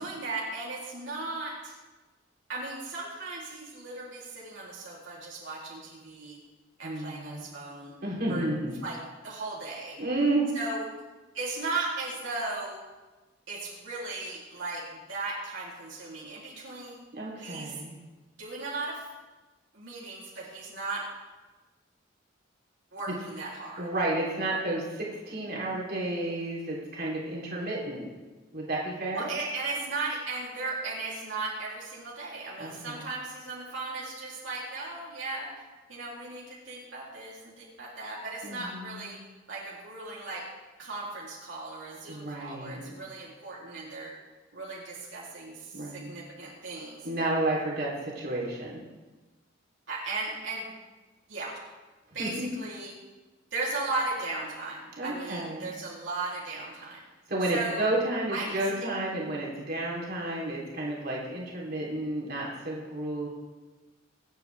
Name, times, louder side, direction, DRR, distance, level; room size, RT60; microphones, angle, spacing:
voice 1, 0.0-1.7 2.5-6.4 6.8-7.9 8.3-8.4 8.8-9.0 9.2-10.0 10.5-10.8 11.3-12.8 13.5-17.0 17.4-17.7 18.4-19.0 19.7-21.1 22.9-23.9 29.1-39.2 39.5-40.4 40.8-44.1 44.5-47.1 49.9-50.7 51.3-51.6 52.1-52.9 53.5-57.0 57.5-57.9 58.3-58.9, right 3 dB, 70° right, -6 dB, 3.3 m, -36 dB
voice 2, 6.8-7.4 8.0-8.8 10.0-10.5 17.1-17.9 23.1-23.2 23.8-28.1 28.5-29.3 32.6-33.0 38.4-39.2 42.1-42.9 45.7-46.1 47.0-48.8 52.2-52.5 55.0-55.7 57.3-63.3, right 2 dB, 55° right, -4 dB, 3.5 m, -31 dB
24.5 x 9.4 x 3.5 m, 1.2 s
head